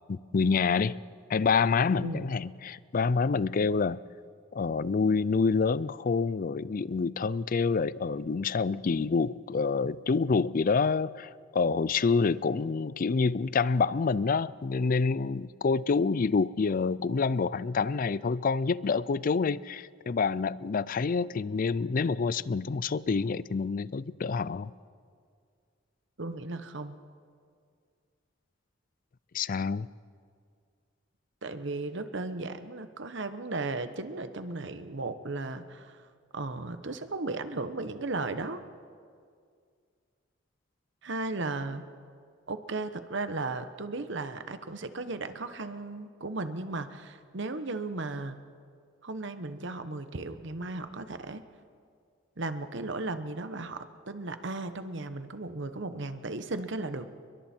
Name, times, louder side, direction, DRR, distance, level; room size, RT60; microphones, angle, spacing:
voice 1, 0.1-1.0 1.3-4.0 4.5-24.7 29.3-29.9, left 4 dB, 45° left, 19 dB, 0.4 m, -27 dB
voice 2, 26.2-27.0 31.4-36.0 36.3-38.6 41.0-41.8 42.5-48.4 49.0-51.4 52.4-57.1, right 3 dB, 65° right, 10 dB, 1.1 m, -35 dB
29.5 x 22.0 x 4.5 m, 2.2 s
head